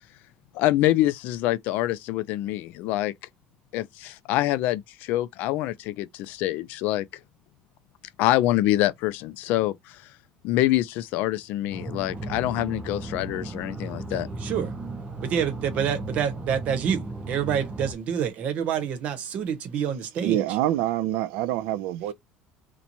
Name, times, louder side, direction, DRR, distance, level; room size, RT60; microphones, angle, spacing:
voice 1, 0.5-3.1 3.7-7.0 8.2-10.0 10.4-14.3, left 15 dB, 60° left, 0.4 m, -25 dB
sound 1, 11.7-17.9, right 2 dB, 15° right, 0.5 m, -35 dB
voice 2, 14.1-14.7 15.2-20.4, right 8 dB, 40° right, 0.8 m, -27 dB
voice 3, 20.2-22.1, right 13 dB, 75° right, 0.5 m, -26 dB
3.0 x 2.2 x 3.9 m
cardioid pair, 170°, 3 cm